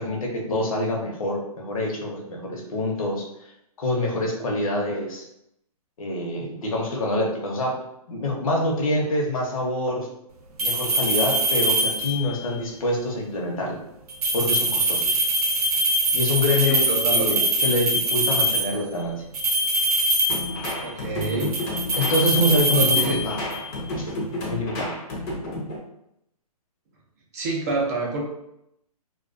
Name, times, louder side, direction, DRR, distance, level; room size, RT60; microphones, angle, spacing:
voice 1, 0.0-3.5 3.8-5.2 6.0-7.7 8.1-10.1 10.6-13.8 14.3-15.0 16.1-16.8 17.1-19.2 22.0-23.4 24.0-24.1 24.5-24.9, left 1 dB, 60° left, 0 dB, 0.8 m, -26 dB
sound 1, 10.6-12.3 14.1-18.8 19.3-20.9 21.2-23.7, right 1 dB, 75° right, 0.6 m, -23 dB
voice 2, 16.7-17.3 20.8-21.6 22.7-23.2 27.3-28.2, right 3 dB, 25° right, -2 dB, 0.4 m, -27 dB
sound 2, 20.3-25.8, left 1 dB, 25° left, 0.5 m, -31 dB
2.3 x 2.2 x 2.5 m, 0.81 s
hypercardioid pair, 155°, 20 cm